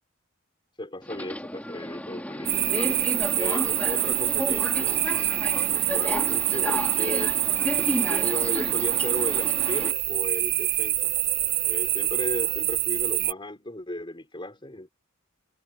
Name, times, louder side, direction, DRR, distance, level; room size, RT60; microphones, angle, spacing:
voice 1, 0.8-11.1 11.7-14.9, left 1 dB, 25° left, 4.5 m, -36 dB
Subway metro underground, 1.0-9.9, left 1 dB, 5° left, 3.7 m, -33 dB
sound 1, 2.5-13.3, right 15 dB, 50° right, 0.9 m, -25 dB
head